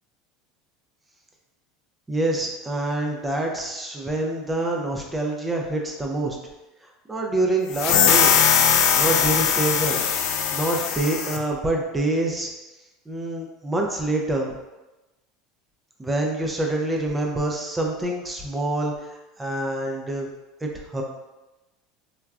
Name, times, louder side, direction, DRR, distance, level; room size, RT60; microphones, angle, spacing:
voice 1, 2.1-6.4 7.1-8.3 8.9-10.0 10.5-12.5 13.1-14.6 16.0-20.3 20.6-21.0, right 2 dB, 15° right, 0 dB, 0.4 m, -26 dB
sound 1, 7.7-11.4, left 7 dB, 65° left, 0.3 m, -20 dB
3.1 x 2.3 x 2.3 m, 1.0 s
supercardioid pair, 115°, 0 cm